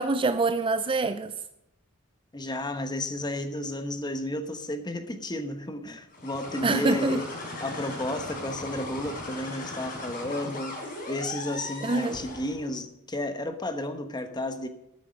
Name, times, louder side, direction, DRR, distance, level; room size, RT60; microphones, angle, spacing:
voice 1, 0.0-1.3 6.6-7.2 11.8-12.2, right 3 dB, 25° right, 0.4 m, -25 dB
voice 2, 2.3-7.3 7.6-14.7, left 1 dB, 20° left, 1.1 m, -32 dB
sound 1, 6.1-12.7, left 2 dB, 40° left, 4.2 m, -38 dB
13.0 x 9.7 x 5.3 m
head